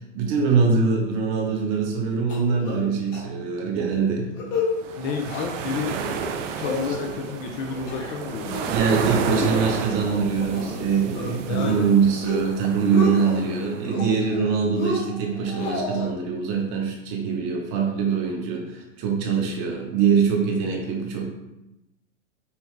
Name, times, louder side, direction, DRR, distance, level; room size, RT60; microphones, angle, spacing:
voice 1, 0.1-4.3 7.2-7.3 8.6-21.3, right 5 dB, 45° right, 1 dB, 1.1 m, -23 dB
sound 1, 2.3-2.9 3.1-3.2 3.6-3.8 4.2-4.7 5.0-5.5 5.9-6.3 6.6-7.3 7.7-8.2 8.5-8.9 9.3-10.8 11.1-11.8 12.1-12.5 12.8-13.4 13.8-14.4 14.8-16.1, left 3 dB, 70° left, 1.2 m, -31 dB
sound 2, 4.7-13.9, right 7 dB, 70° right, 0.6 m, -32 dB
voice 2, 4.9-5.9 6.6-8.6 11.5-11.9, left 5 dB, 35° left, 2 dB, 0.4 m, -30 dB
5.6 x 2.3 x 3.2 m, 0.93 s
hypercardioid pair, 115°, 38 cm